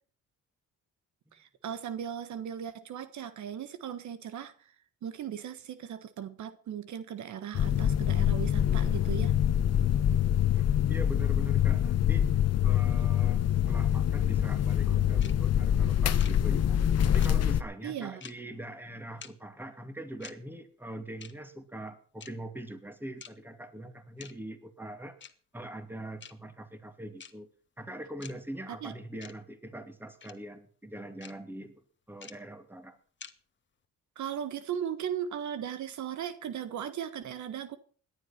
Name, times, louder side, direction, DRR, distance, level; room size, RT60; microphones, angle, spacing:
voice 1, 1.3-4.7 5.0-9.3 17.8-18.2 28.7-28.9 34.1-37.8, right 9 dB, 70° right, 1.4 m, -37 dB
sound 1, 7.5-17.6, left 10 dB, 55° left, 1.1 m, -25 dB
voice 2, 10.2-12.3 12.6-25.2 25.5-27.5 27.8-31.8 32.1-33.0, right 1 dB, 5° right, 2.6 m, -43 dB
sound 2, 15.2-15.3 16.2-16.3 17.2-17.3 18.2-18.3 19.2-19.3 20.2-20.3 21.2-21.3 22.2-22.3 23.2-23.3 24.2-24.3 25.2-25.3 26.2-26.3 27.2-27.3 28.2-28.3 29.2-29.3 30.2-30.3 31.2-31.3 32.2-32.3 33.2-33.3, left 6 dB, 40° left, 1.4 m, -46 dB
17.5 x 11.0 x 5.9 m
cardioid pair, 90°, 30 cm